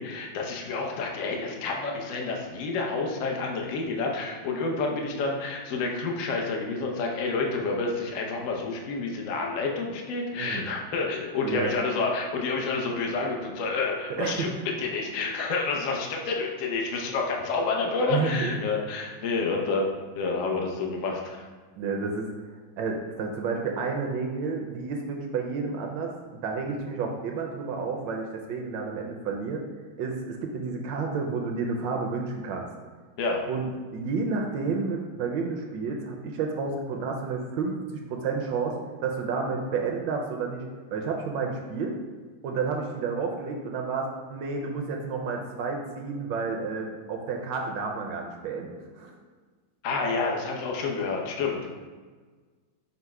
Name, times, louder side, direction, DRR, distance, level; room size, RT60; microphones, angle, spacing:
voice 1, 0.0-21.4 33.2-33.5 49.8-51.7, left 3 dB, 85° left, 0 dB, 0.7 m, -29 dB
voice 2, 10.3-10.7 11.4-11.7 14.2-14.5 18.1-18.6 21.8-22.3 22.8-29.6 30.0-32.7 33.5-40.6 40.9-41.9 42.4-48.7 49.0-49.1, right 4 dB, 75° right, 1 dB, 1.1 m, -30 dB
5.3 x 2.1 x 4.6 m, 1.4 s
omnidirectional pair, 2.2 m